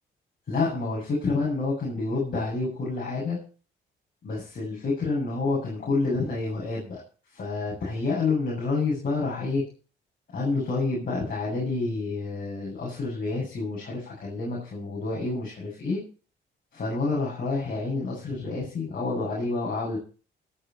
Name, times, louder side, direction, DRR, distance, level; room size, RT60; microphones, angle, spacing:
voice 1, 0.5-3.4 4.2-7.0 7.3-9.6 10.3-16.0 16.7-20.0, left 3 dB, 45° left, -5 dB, 7.3 m, -28 dB
21.0 x 8.7 x 4.5 m, 0.38 s
cardioid pair, 90°, 20 cm